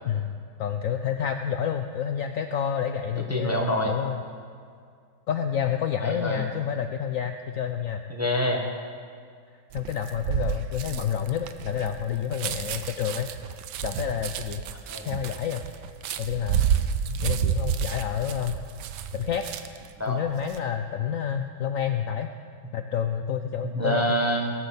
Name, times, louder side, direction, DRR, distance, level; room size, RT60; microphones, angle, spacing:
voice 1, 0.1-3.5 3.8-4.2 5.3-8.0 9.7-13.3 13.8-14.7 15.0-15.6 16.2-16.6 17.2-18.6 19.1-19.5 20.1-22.3 22.7-24.2, left 8 dB, 85° left, 7 dB, 0.7 m, -29 dB
voice 2, 3.3-4.0 6.0-6.4 8.1-8.6 14.9-15.1 20.0-20.2 23.6-24.5, equal, 10° right, 1 dB, 0.8 m, -26 dB
sound 1, 9.7-19.9 20.3-20.6, right 9 dB, 75° right, 1.2 m, -30 dB
18.0 x 6.2 x 7.2 m, 2.2 s
omnidirectional pair, 2.0 m